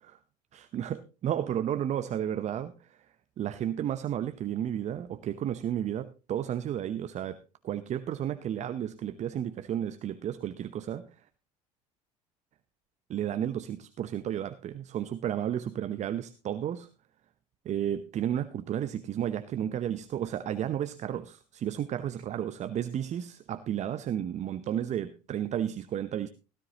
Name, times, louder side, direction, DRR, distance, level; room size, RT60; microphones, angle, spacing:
voice 1, 0.5-3.0 3.4-7.4 7.6-11.1 13.1-16.9 17.6-26.3, right 10 dB, 40° right, 0.8 m, -32 dB
16.5 x 13.0 x 2.9 m
figure-of-eight pair, 65°, 18 cm